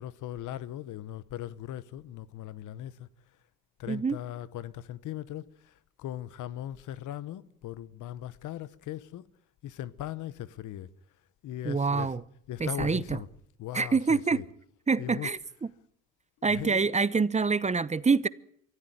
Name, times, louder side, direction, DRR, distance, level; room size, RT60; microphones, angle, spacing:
voice 1, 0.0-3.1 3.8-9.3 9.6-10.9 11.4-12.1 12.5-13.3 13.6-14.4 15.0-15.3 16.5-16.9, left 12 dB, 80° left, 1.1 m, -39 dB
voice 2, 3.9-4.2 11.6-12.2 12.6-13.2 13.7-14.4 14.9-15.7 16.4-18.3, right 4 dB, 25° right, 0.8 m, -26 dB
24.0 x 14.5 x 9.4 m
cardioid pair, 90°, 30 cm